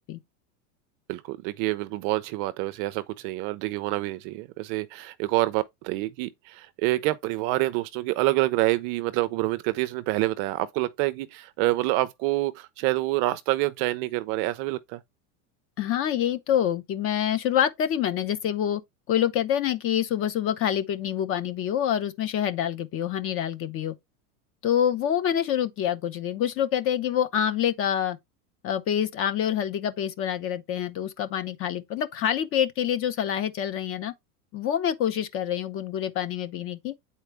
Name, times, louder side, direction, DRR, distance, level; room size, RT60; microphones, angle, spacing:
voice 1, 1.1-15.0, right 18 dB, 40° right, 0.5 m, -27 dB
voice 2, 15.8-18.8 19.1-23.9 24.6-28.2 28.6-34.1 34.5-36.9, left 10 dB, 30° left, 0.6 m, -26 dB
8.0 x 4.3 x 3.4 m
supercardioid pair, 130°, 48 cm